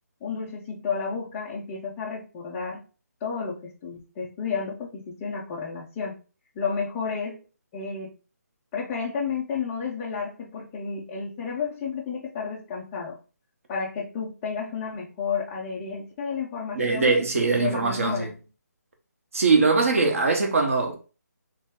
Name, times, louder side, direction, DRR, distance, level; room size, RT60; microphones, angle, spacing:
voice 1, 0.2-2.8 3.2-6.2 6.6-7.4 7.7-8.1 8.7-13.2 13.7-17.1 17.5-18.3, left 5 dB, 10° left, 0.3 m, -31 dB
voice 2, 16.7-18.3 19.3-21.0, right 4 dB, 50° right, 1.0 m, -21 dB
3.2 x 2.8 x 3.6 m
hypercardioid pair, 170°, 9 cm